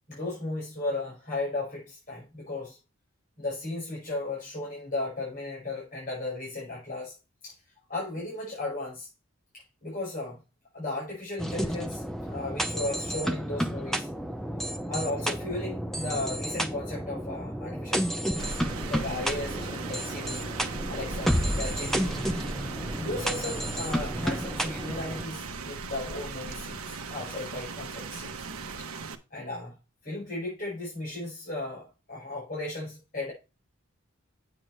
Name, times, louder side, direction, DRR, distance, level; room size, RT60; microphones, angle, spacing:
voice 1, 0.1-2.8 3.4-7.1 7.4-7.5 7.9-9.1 9.8-10.4 10.7-12.0 12.3-14.1 14.9-18.5 18.9-20.5 20.9-22.2 23.0-26.8 27.1-28.3 29.3-29.8 30.0-33.3, left 2 dB, 40° left, 5.5 m, -35 dB
sound 1, 11.4-25.2, equal, ahead, 0.6 m, -31 dB
Rain, 18.4-29.1, right 3 dB, 85° right, 1.1 m, -37 dB
8.7 x 7.7 x 3.3 m
head